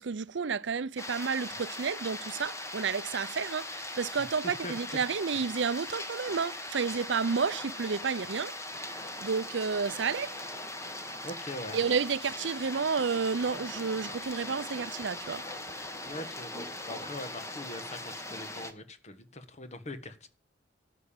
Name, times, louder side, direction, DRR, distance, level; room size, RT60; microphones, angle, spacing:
voice 1, 0.0-8.5 9.2-10.3 11.7-15.4, right 5 dB, 70° right, 0.6 m, -31 dB
sound 1, 1.0-18.7, left 1 dB, 15° left, 1.5 m, -40 dB
voice 2, 4.2-4.7 11.2-11.8 16.0-20.3, left 1 dB, 40° left, 1.5 m, -42 dB
12.0 x 7.2 x 8.8 m
head